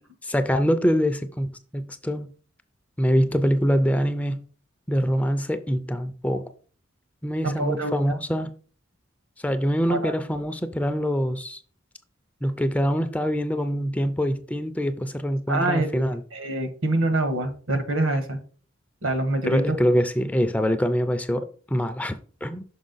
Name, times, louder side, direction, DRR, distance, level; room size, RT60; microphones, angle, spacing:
voice 1, 0.2-2.3 3.0-4.4 4.9-6.4 7.2-8.5 9.4-11.6 12.4-16.2 19.5-22.6, equal, 5° left, 0.3 m, -24 dB
voice 2, 7.4-7.9 9.9-10.1 15.5-16.0 16.3-18.4 19.0-19.6, right 2 dB, 80° right, 1.2 m, -25 dB
6.3 x 4.5 x 3.9 m
head